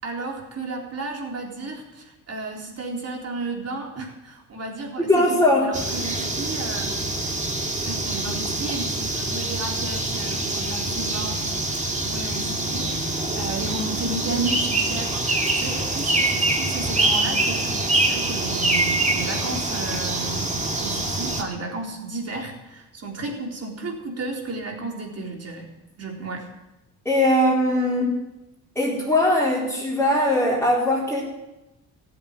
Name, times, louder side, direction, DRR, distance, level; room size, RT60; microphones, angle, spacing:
voice 1, 0.0-7.0 7.9-25.7 26.0-26.5, right 2 dB, 40° right, 1 dB, 4.1 m, -33 dB
voice 2, 5.0-5.7 27.0-28.1 28.8-31.2, left 1 dB, 5° left, -7 dB, 4.4 m, -20 dB
sound 1, 5.7-21.4, right 2 dB, 20° right, 2.4 m, -25 dB
15.5 x 8.0 x 9.8 m, 0.99 s
cardioid pair, 85°, 37 cm